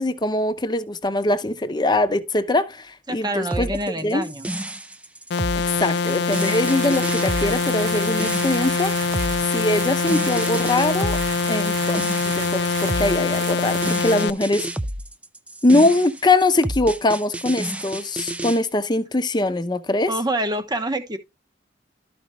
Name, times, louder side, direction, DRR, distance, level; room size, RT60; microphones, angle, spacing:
voice 1, 0.0-3.7 4.0-4.3 5.8-8.9 9.5-11.2 11.5-14.7 15.6-20.1, left 2 dB, 25° left, 0.8 m, -22 dB
voice 2, 3.1-4.5 20.1-21.2, right 1 dB, 25° right, 1.0 m, -26 dB
sound 1, 3.5-18.6, right 1 dB, 5° right, 0.4 m, -31 dB
sound 2, 5.3-14.3, left 4 dB, 65° left, 0.3 m, -24 dB
sound 3, 5.8-14.1, right 7 dB, 80° right, 0.8 m, -34 dB
12.0 x 5.2 x 3.1 m
head